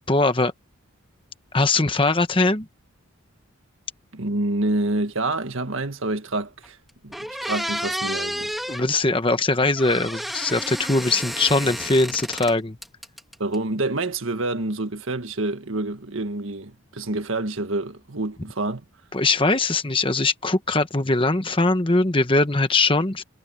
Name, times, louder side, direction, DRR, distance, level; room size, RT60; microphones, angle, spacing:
voice 1, 0.1-0.5 1.5-2.7 8.7-12.8 19.1-23.2, left 2 dB, 25° left, 1.2 m, -21 dB
voice 2, 4.1-6.8 7.0-8.6 13.4-18.8, right 2 dB, 70° right, 1.7 m, -27 dB
sound 1, 6.6-6.7 7.1-8.8 9.8-12.5 12.8-13.5, equal, ahead, 1.7 m, -31 dB
head